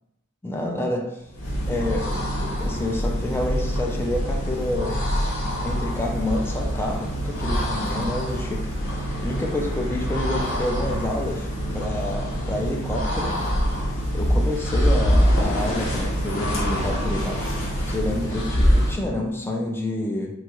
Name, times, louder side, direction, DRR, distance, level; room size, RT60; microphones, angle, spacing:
voice 1, 0.4-1.2 1.7-5.0 5.6-8.9 9.2-11.5 11.7-13.3 13.7-13.8 14.1-20.3, left 1 dB, 10° left, 0 dB, 0.3 m, -28 dB
sound 1, 1.3-19.1, equal, 60° left, 0.7 m, -25 dB
2.7 x 2.3 x 2.9 m, 0.86 s
head